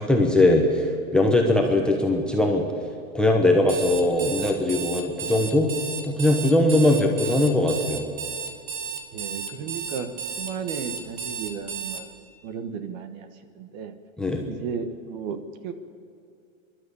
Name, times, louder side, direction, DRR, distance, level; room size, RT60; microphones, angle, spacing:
voice 1, 0.0-2.6 3.1-5.7 6.0-8.1 14.2-14.4, left 1 dB, ahead, 2 dB, 1.1 m, -20 dB
Alarm, 3.6-12.0, right 6 dB, 80° right, 2.3 m, -33 dB
voice 2, 9.1-10.1 10.4-12.1 12.4-13.3 13.5-13.9 14.5-15.7, right 6 dB, 35° right, 9 dB, 1.3 m, -34 dB
26.0 x 12.0 x 8.3 m, 2.4 s
supercardioid pair, 160°, 40 cm